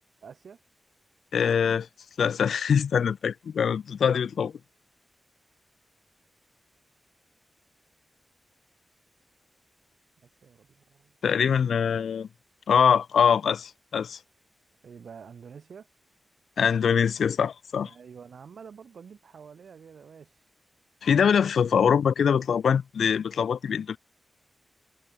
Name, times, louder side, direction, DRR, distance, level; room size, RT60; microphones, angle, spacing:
voice 1, 0.2-0.6 10.4-11.1 14.8-15.9 17.8-20.3 21.6-21.7, right 6 dB, 70° right, 1.9 m, -47 dB
voice 2, 1.3-1.9 2.2-4.5 11.2-12.3 12.7-14.2 16.6-17.9 21.0-24.0, left 7 dB, 90° left, 0.6 m, -23 dB
wide cardioid pair, 165°, 0 cm